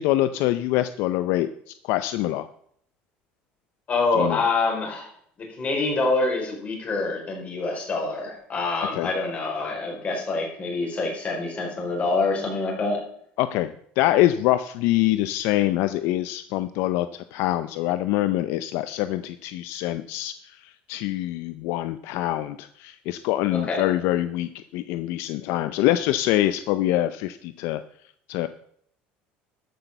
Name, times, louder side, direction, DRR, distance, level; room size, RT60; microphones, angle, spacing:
voice 1, 0.0-2.5 4.2-4.4 8.9-9.1 13.4-13.7 14.0-27.8 28.3-28.5, left 14 dB, 75° left, 12 dB, 0.5 m, -25 dB
voice 2, 3.9-5.1 5.4-13.0 23.5-23.8, left 3 dB, 30° left, 1 dB, 4.5 m, -26 dB
13.0 x 6.1 x 6.7 m, 0.65 s
cardioid pair, 120°, 4 cm